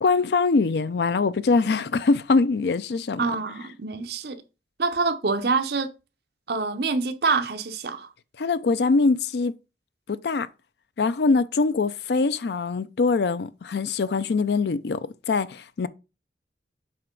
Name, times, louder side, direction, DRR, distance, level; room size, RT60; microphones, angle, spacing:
voice 1, 0.0-3.3 8.4-9.5 10.1-10.5 11.0-15.9, left 4 dB, 70° left, 0.4 m, -23 dB
voice 2, 3.2-4.4 4.8-5.9 6.5-8.1, right 4 dB, 65° right, 0.8 m, -26 dB
7.7 x 4.5 x 3.8 m
head